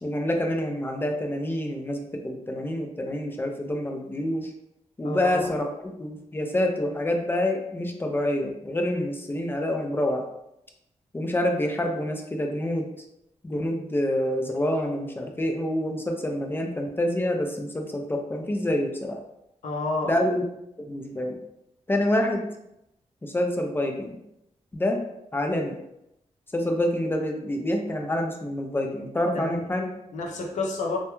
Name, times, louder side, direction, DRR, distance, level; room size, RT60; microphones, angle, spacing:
voice 1, 0.0-4.5 5.0-10.2 11.1-12.9 13.4-19.2 20.0-20.5 20.8-21.4 21.9-22.5 23.2-24.2 24.7-25.0 25.3-25.8 26.5-29.9, left 1 dB, 20° left, 2 dB, 0.4 m, -27 dB
voice 2, 5.0-5.5 19.6-20.1 29.3-29.5 30.1-31.0, left 3 dB, 90° left, 0 dB, 0.5 m, -29 dB
2.2 x 2.1 x 2.9 m, 0.82 s
wide cardioid pair, 105°, 12 cm